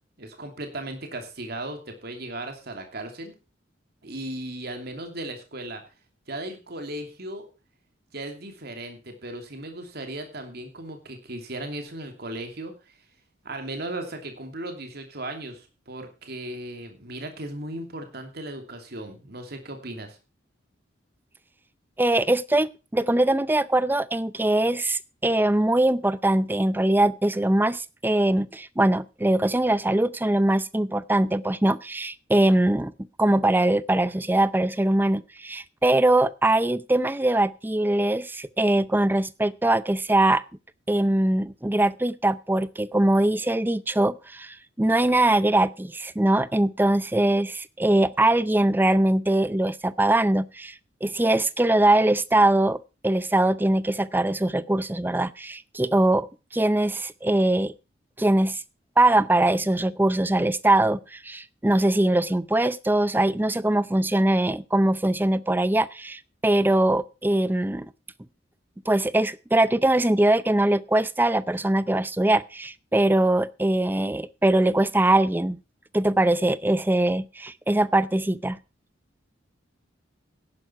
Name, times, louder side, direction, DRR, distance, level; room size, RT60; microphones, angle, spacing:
voice 1, 0.2-3.3 4.0-5.8 6.3-7.4 8.1-13.0 13.4-20.2, right 1 dB, 55° right, 5 dB, 2.8 m, -36 dB
voice 2, 22.0-32.9 33.2-40.4 40.9-50.7 51.0-52.8 53.0-56.3 56.5-57.7 58.2-58.6 59.0-67.9 68.9-75.6 75.9-78.6, right 1 dB, 10° right, 18 dB, 0.5 m, -22 dB
11.0 x 9.4 x 5.7 m, 0.32 s
head